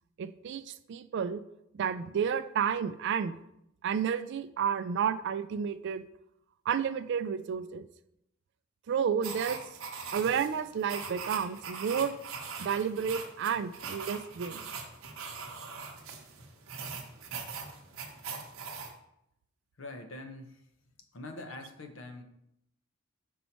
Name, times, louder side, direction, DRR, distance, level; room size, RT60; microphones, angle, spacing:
voice 1, 0.2-1.4 1.7-3.3 3.8-6.0 6.7-7.9 8.9-9.6 10.1-12.1 12.6-14.6, right 7 dB, 55° right, 13 dB, 0.3 m, -31 dB
sound 1, 9.2-18.9, right 5 dB, 75° right, 0.9 m, -41 dB
voice 2, 19.8-22.2, left 2 dB, 65° left, 6 dB, 0.7 m, -45 dB
5.5 x 4.2 x 4.3 m, 0.80 s
head